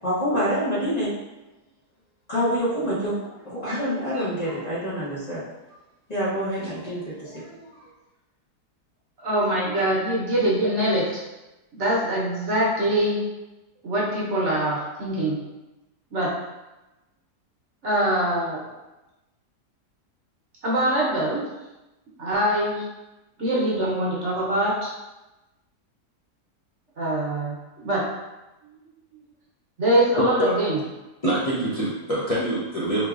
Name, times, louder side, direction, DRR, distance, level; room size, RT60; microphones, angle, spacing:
voice 1, 0.0-1.1 2.3-5.4 6.1-7.7, equal, 30° left, -9 dB, 0.9 m, -27 dB
voice 2, 9.2-11.2 11.7-13.2 13.8-15.4 16.1-16.3 17.8-18.7 20.6-21.4 22.2-22.8 23.4-24.9 27.0-28.0 29.8-30.8, right 1 dB, 55° right, -5 dB, 1.0 m, -23 dB
voice 3, 30.2-30.5 31.2-33.1, right 1 dB, 65° left, -9 dB, 0.3 m, -25 dB
4.5 x 3.0 x 2.4 m, 1.0 s
omnidirectional pair, 1.7 m